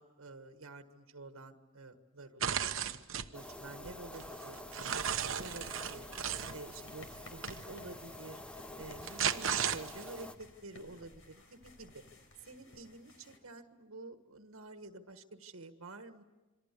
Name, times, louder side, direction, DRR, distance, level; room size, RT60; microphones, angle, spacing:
voice 1, 0.0-6.1 6.5-7.1 7.3-8.4 8.8-12.0 12.4-16.2, right 2 dB, 90° right, 7 dB, 1.5 m, -50 dB
sound 1, 2.4-3.3 3.8-6.5 7.4-7.6 8.8-10.2, right 8 dB, 75° right, 1.1 m, -35 dB
sound 2, 3.3-10.3, left 1 dB, 5° left, 0.9 m, -48 dB
sound 3, 4.8-13.4, left 2 dB, 90° left, 4.6 m, -57 dB
27.0 x 24.5 x 8.4 m, 1.2 s
head